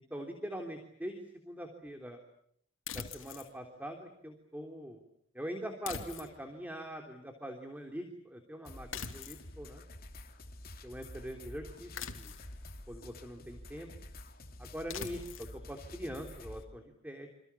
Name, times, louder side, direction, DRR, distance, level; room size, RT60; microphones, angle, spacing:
voice 1, 0.1-2.2 2.9-5.0 5.3-9.8 10.8-12.3 12.9-13.9 14.6-17.3, equal, 10° right, 4 dB, 3.3 m, -43 dB
sound 1, 2.9-3.5 5.9-6.6 8.9-9.5 11.9-12.6 14.9-15.5, left 7 dB, 90° left, 2.9 m, -42 dB
sound 2, 8.6-16.6, left 1 dB, 50° left, 3.0 m, -49 dB
28.5 x 27.5 x 7.1 m, 0.70 s
head